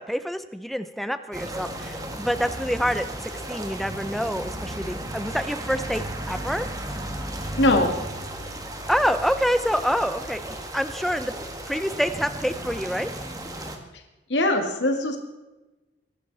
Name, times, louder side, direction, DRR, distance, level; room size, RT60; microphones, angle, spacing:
voice 1, 0.0-6.7 8.9-10.4 10.7-11.3 11.7-13.1, equal, ahead, 11 dB, 0.7 m, -27 dB
sound 1, 1.3-13.8, right 1 dB, 20° right, 1.7 m, -34 dB
voice 2, 7.6-7.9 14.3-15.2, left 1 dB, 85° left, 4 dB, 2.1 m, -21 dB
23.5 x 11.5 x 4.1 m, 1.1 s
head